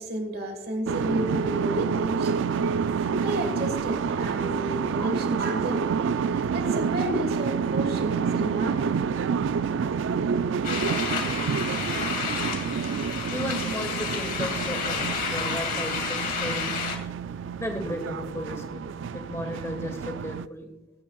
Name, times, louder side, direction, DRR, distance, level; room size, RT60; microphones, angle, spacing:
voice 1, 0.0-9.1, equal, 50° right, 5 dB, 1.6 m, -32 dB
sound 1, 0.9-20.5, right 6 dB, 75° right, 0.3 m, -28 dB
sound 2, 10.6-17.0, left 5 dB, 50° left, 2.3 m, -30 dB
voice 2, 13.3-17.0 17.6-20.7, left 1 dB, 15° left, 5 dB, 1.7 m, -35 dB
24.5 x 8.5 x 2.3 m, 0.97 s
head